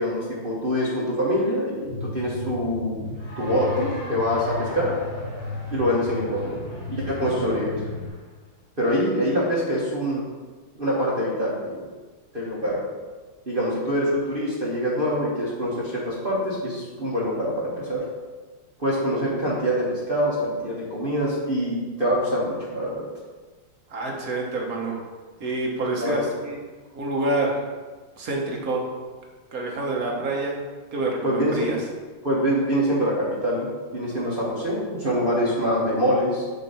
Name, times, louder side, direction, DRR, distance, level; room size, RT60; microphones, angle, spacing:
voice 1, 0.0-3.1 3.4-4.9 5.7-6.6 6.9-7.8 8.8-10.2 10.7-11.8 12.3-12.8 13.5-18.0 18.8-23.0 26.0-26.2 31.2-31.5 32.2-36.5, equal, 30° right, -7 dB, 1.2 m, -25 dB
sound 1, 1.8-8.1, left 2 dB, 50° left, 1.9 m, -34 dB
Cheering / Applause, 3.1-8.3, left 1 dB, 85° left, 2.5 m, -41 dB
voice 2, 23.9-25.0 25.4-26.6 26.8-27.7 28.2-28.9 29.5-30.6 30.9-31.8, right 2 dB, 50° right, -1 dB, 1.4 m, -27 dB
7.5 x 3.2 x 5.5 m, 1.4 s
omnidirectional pair, 2.3 m